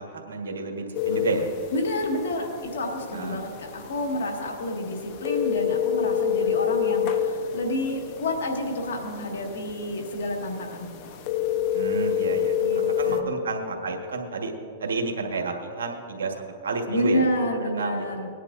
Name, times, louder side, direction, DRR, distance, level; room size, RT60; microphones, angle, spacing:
voice 1, 0.0-1.5 3.1-3.4 11.7-14.5 14.8-17.2 17.8-18.2, right 3 dB, 85° right, 3 dB, 1.5 m, -30 dB
sound 1, 0.9-13.2, left 8 dB, 45° left, 0.9 m, -29 dB
voice 2, 1.7-10.9 12.6-13.3 16.9-18.3, left 1 dB, 80° left, 1 dB, 1.9 m, -29 dB
21.0 x 10.0 x 2.6 m, 2.5 s
hypercardioid pair, 125°, 0 cm